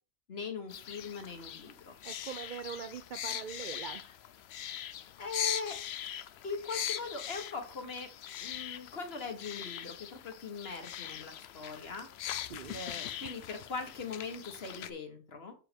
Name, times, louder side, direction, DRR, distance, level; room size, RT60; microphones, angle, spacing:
voice 1, 0.3-1.9 5.2-5.8 6.4-8.1 8.4-12.1 12.7-15.5, left 4 dB, 50° left, 5 dB, 1.6 m, -40 dB
sound 1, 0.7-14.9, left 11 dB, 65° left, 0.7 m, -41 dB
voice 2, 2.0-4.0 12.5-12.8, right 7 dB, 80° right, 11 dB, 0.4 m, -42 dB
6.6 x 5.1 x 5.1 m, 0.35 s
omnidirectional pair, 1.4 m